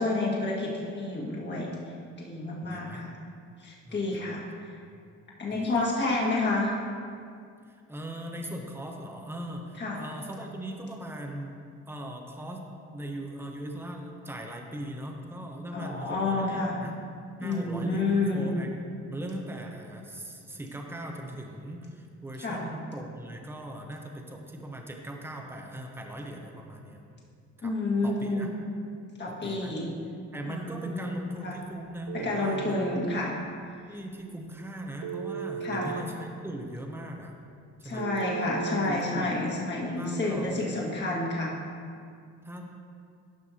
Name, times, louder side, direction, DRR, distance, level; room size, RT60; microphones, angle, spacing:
voice 1, 0.0-1.7 2.2-3.1 3.6-4.4 5.4-6.7 9.8-10.0 15.7-16.7 17.4-18.5 22.4-22.6 27.6-28.5 29.2-29.9 30.5-31.6 32.2-33.3 35.6-35.9 37.8-41.5, left 2 dB, 35° left, -4 dB, 1.7 m, -29 dB
voice 2, 2.6-3.0 3.8-4.4 5.5-5.7 7.7-12.6 12.9-17.0 17.4-27.0 27.6-27.7 28.0-28.5 29.3-29.7 30.3-33.0 33.9-37.4 37.8-38.1 38.8-39.4 40.0-40.8 42.4-42.6, right 1 dB, 10° right, 2 dB, 0.8 m, -39 dB
Telephone, 32.1-33.1 35.0-36.0 38.0-39.0, right 7 dB, 60° right, 0.5 m, -35 dB
11.0 x 5.8 x 2.8 m, 2.3 s
cardioid pair, 90°, 30 cm